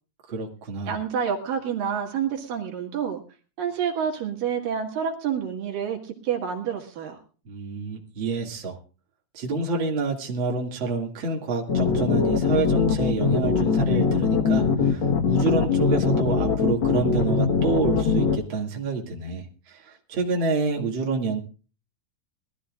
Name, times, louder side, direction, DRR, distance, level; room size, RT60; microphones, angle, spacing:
voice 1, 0.3-1.0 7.5-8.8 9.3-21.4, right 3 dB, 40° right, 0 dB, 2.6 m, -28 dB
voice 2, 0.9-3.2 3.6-7.2, right 7 dB, 75° right, 2 dB, 3.5 m, -28 dB
sound 1, 11.7-18.4, left 5 dB, 55° left, 1.5 m, -22 dB
22.0 x 14.0 x 2.4 m, 0.36 s
omnidirectional pair, 4.0 m